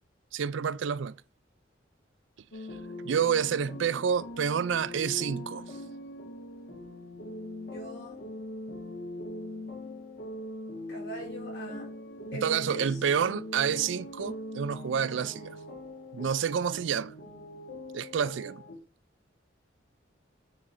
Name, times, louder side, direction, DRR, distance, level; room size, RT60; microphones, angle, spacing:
voice 1, 0.3-1.2 3.0-5.7 12.3-15.6 16.1-17.1 17.9-18.6, right 7 dB, 85° right, 0.4 m, -29 dB
sound 1, 2.5-18.8, left 1 dB, 55° left, 1.4 m, -41 dB
voice 2, 7.7-8.2 10.9-11.9 12.3-13.0, right 1 dB, 75° left, 3.7 m, -42 dB
8.6 x 4.0 x 4.2 m
head